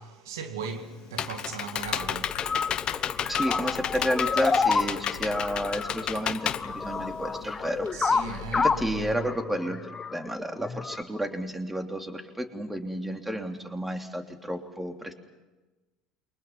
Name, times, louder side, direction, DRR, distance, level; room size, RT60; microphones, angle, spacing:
voice 1, 0.0-3.3 7.9-9.3 9.7-9.8, right 5 dB, 75° right, 2.3 m, -39 dB
Computer keyboard, 0.6-7.5, left 9 dB, 40° left, 0.9 m, -32 dB
sound 1, 1.8-9.1, left 8 dB, 65° left, 1.8 m, -44 dB
sound 2, 2.0-11.0, left 4 dB, 25° left, 1.1 m, -29 dB
voice 2, 3.3-7.9 8.5-9.8 10.1-15.1, equal, 10° right, 3.2 m, -31 dB
28.5 x 24.0 x 5.9 m
figure-of-eight pair, 65°, 2 cm